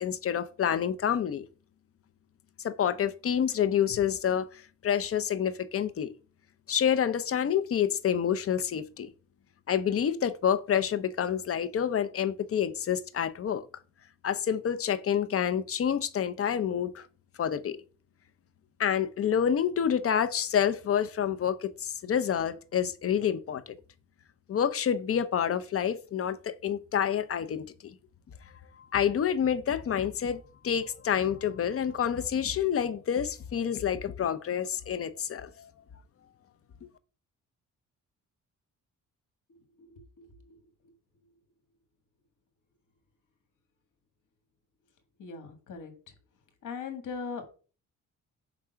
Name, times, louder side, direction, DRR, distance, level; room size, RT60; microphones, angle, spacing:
voice 1, 0.0-1.4 2.6-6.1 6.7-9.1 9.7-13.7 14.2-17.1 17.4-17.8 18.8-23.8 24.5-27.7 28.9-35.7, left 8 dB, 45° left, 0.6 m, -28 dB
voice 2, 45.2-45.9 46.6-47.5, left 5 dB, 70° left, 1.6 m, -39 dB
4.9 x 3.6 x 5.6 m
cardioid pair, 105°, 32 cm